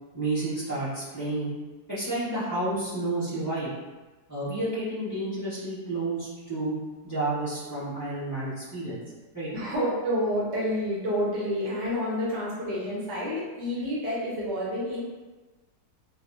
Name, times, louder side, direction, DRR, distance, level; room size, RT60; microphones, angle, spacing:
voice 1, 0.1-1.5 1.9-3.7 4.3-6.7 7.0-9.0 9.3-9.5, right 2 dB, 15° right, -12 dB, 0.7 m, -30 dB
voice 2, 9.5-15.0, equal, 75° right, -7 dB, 1.4 m, -29 dB
3.3 x 2.0 x 2.6 m, 1.2 s
omnidirectional pair, 1.9 m